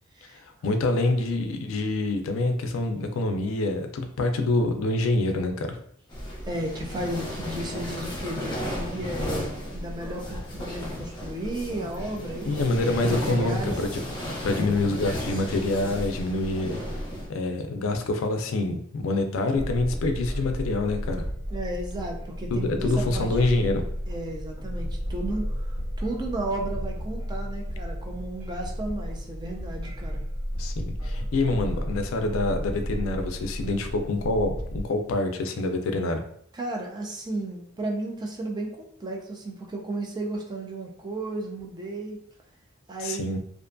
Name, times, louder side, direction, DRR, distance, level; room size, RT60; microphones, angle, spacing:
voice 1, 0.4-5.8 12.4-14.0 14.4-16.8 17.3-21.2 22.5-23.8 30.6-36.2 43.0-43.4, left 2 dB, 80° left, 6 dB, 0.4 m, -26 dB
sound 1, 6.1-17.3, equal, 25° left, 0.8 m, -34 dB
voice 2, 6.5-12.6 13.0-13.8 21.5-23.3 24.1-30.2 36.5-42.2 42.9-43.3, right 2 dB, 20° right, 0 dB, 0.4 m, -34 dB
sound 2, 19.6-34.8, equal, 90° right, 1.0 m, -33 dB
2.5 x 2.2 x 2.5 m, 0.66 s
head